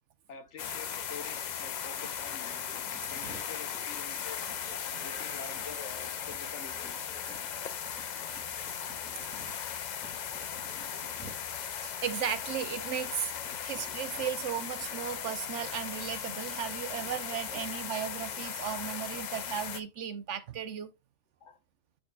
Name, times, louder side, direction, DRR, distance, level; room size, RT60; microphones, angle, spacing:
voice 1, 0.3-2.6 3.1-4.5 5.0-7.1 17.5-17.8 18.8-19.0 21.4-21.6, left 5 dB, 60° left, 1.2 m, -47 dB
sound 1, 0.6-19.8, left 8 dB, 80° left, 0.4 m, -38 dB
sound 2, 1.2-19.7, right 1 dB, 5° left, 2.2 m, -56 dB
voice 2, 4.9-5.3 11.7-13.3 13.6-20.9, right 9 dB, 65° right, 0.9 m, -36 dB
8.7 x 5.0 x 2.3 m
omnidirectional pair, 1.4 m